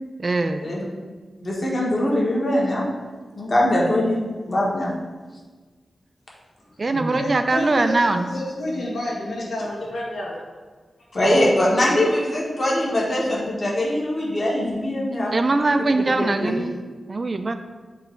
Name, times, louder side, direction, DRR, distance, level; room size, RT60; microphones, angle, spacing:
voice 1, 0.2-0.7 6.8-8.3 15.3-16.8 17.1-17.6, right 3 dB, 35° right, 8 dB, 0.3 m, -22 dB
voice 2, 1.4-2.8 3.4-4.2 4.5-4.9 6.9-7.2 11.1-15.3 16.4-16.5, left 1 dB, 35° left, -4 dB, 1.4 m, -22 dB
voice 3, 7.1-10.4, left 1 dB, 85° left, -4 dB, 1.7 m, -29 dB
7.9 x 3.0 x 4.4 m, 1.4 s
wide cardioid pair, 175°, 0 cm